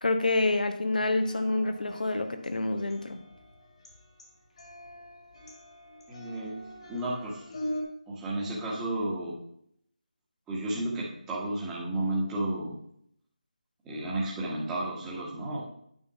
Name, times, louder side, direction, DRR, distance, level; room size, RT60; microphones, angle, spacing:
voice 1, 0.0-3.2, left 2 dB, 80° left, 8 dB, 1.1 m, -27 dB
sound 1, 1.2-7.8, equal, 50° left, 2.1 m, -43 dB
voice 2, 6.1-7.5 8.1-9.4 10.5-12.8 13.8-15.6, right 1 dB, 5° right, -5 dB, 1.3 m, -32 dB
9.0 x 4.4 x 5.9 m, 0.70 s
figure-of-eight pair, 170°, 4 cm